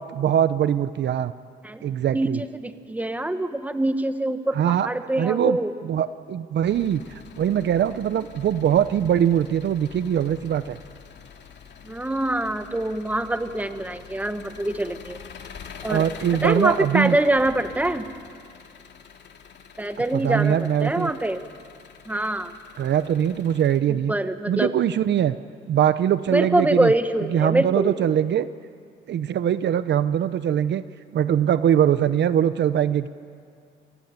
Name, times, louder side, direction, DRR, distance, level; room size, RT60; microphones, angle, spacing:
voice 1, 0.0-1.3 1.8-2.4 4.5-4.9 5.2-10.8 15.9-17.2 20.1-21.1 22.8-24.1 24.5-25.3 25.7-26.9 27.3-28.5 29.1-30.8 31.1-33.1, right 10 dB, 60° right, 13 dB, 0.8 m, -22 dB
voice 2, 2.6-5.7 11.8-15.2 15.8-16.1 16.4-18.0 19.8-21.4 22.1-22.5 24.1-24.7 26.3-28.1, right 1 dB, 10° right, 9 dB, 1.4 m, -24 dB
Engine, 6.7-23.8, left 7 dB, 60° left, 2.4 m, -45 dB
29.5 x 16.0 x 9.6 m, 2.2 s
cardioid pair, 90°, 20 cm